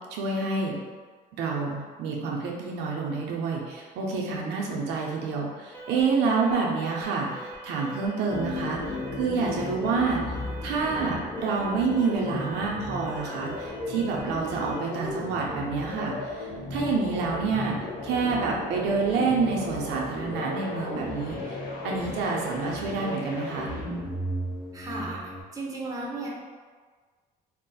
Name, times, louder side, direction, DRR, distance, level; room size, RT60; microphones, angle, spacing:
voice 1, 0.1-0.8 1.4-8.8 9.2-10.3 10.6-17.7 18.0-21.4 21.8-23.7, right 4 dB, 85° right, -2 dB, 0.5 m, -28 dB
Alarm, 5.7-15.0, right 1 dB, 10° left, 0.4 m, -44 dB
sound 1, 8.3-25.4, left 1 dB, 55° left, 0.8 m, -35 dB
voice 2, 24.7-25.2 25.5-26.3, right 2 dB, 20° right, -4 dB, 0.7 m, -34 dB
2.3 x 2.0 x 3.9 m, 1.5 s
cardioid pair, 110°, 17 cm